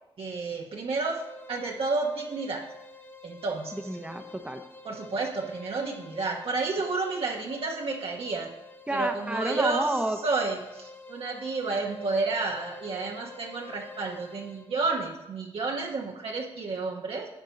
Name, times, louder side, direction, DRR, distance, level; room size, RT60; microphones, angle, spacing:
voice 1, 0.2-1.2 1.5-2.6 3.2-3.7 4.8-8.5 8.9-9.9 10.2-17.3, right 3 dB, 65° right, -1 dB, 1.1 m, -31 dB
sound 1, 1.1-14.7, left 3 dB, 25° left, 1.7 m, -48 dB
voice 2, 3.7-4.6 8.9-10.2, right 1 dB, 10° right, 6 dB, 0.9 m, -30 dB
10.5 x 4.4 x 5.2 m, 0.92 s
cardioid pair, 55°, 10 cm